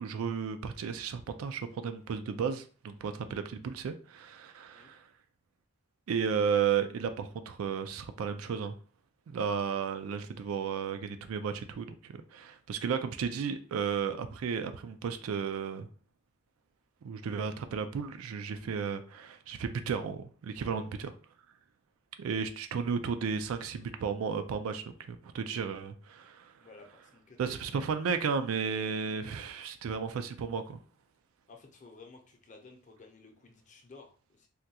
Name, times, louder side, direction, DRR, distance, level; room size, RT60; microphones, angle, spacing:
voice 1, 0.0-5.0 6.1-8.8 9.3-15.9 17.0-20.8 22.2-26.5 27.4-30.8, right 6 dB, 90° right, 0.4 m, -33 dB
voice 2, 26.6-27.8 31.5-34.5, left 3 dB, 40° left, 0.6 m, -54 dB
3.5 x 2.2 x 2.7 m
head